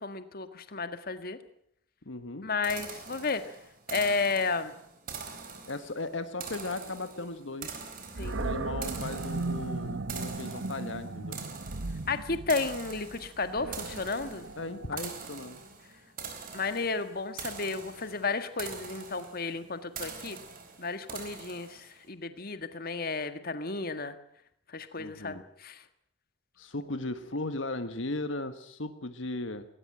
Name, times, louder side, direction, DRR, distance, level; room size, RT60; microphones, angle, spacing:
voice 1, 0.0-1.4 2.4-3.4 3.9-4.7 8.2-8.4 12.1-14.5 16.5-20.4 20.8-24.1 24.7-25.8, left 4 dB, 50° left, 10 dB, 1.7 m, -33 dB
voice 2, 2.0-2.5 5.7-7.8 8.4-11.4 14.6-15.6 25.0-25.4 26.6-29.7, left 2 dB, 75° left, 10 dB, 1.5 m, -37 dB
sound 1, 2.6-22.0, right 5 dB, 45° right, 4.2 m, -44 dB
Animal, 8.2-15.3, right 3 dB, 90° right, 1.2 m, -37 dB
19.5 x 18.5 x 9.0 m, 0.70 s
head